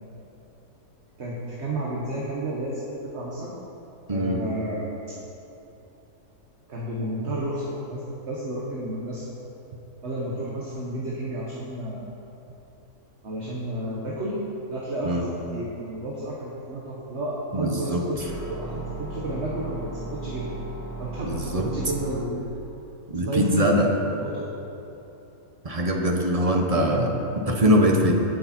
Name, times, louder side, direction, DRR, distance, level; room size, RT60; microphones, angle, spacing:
voice 1, 1.2-3.6 4.1-4.9 6.7-9.3 10.0-12.1 13.2-14.4 14.7-20.5 21.0-22.6 23.2-24.4, right 1 dB, 50° right, -4 dB, 1.5 m, -31 dB
voice 2, 4.1-4.4 15.0-15.3 17.5-18.0 21.3-21.7 23.1-23.9 25.6-28.1, equal, 30° right, 1 dB, 0.9 m, -22 dB
sound 1, 18.2-22.2, right 2 dB, 15° left, 1.5 m, -36 dB
17.0 x 6.7 x 4.4 m, 3.0 s
omnidirectional pair, 1.6 m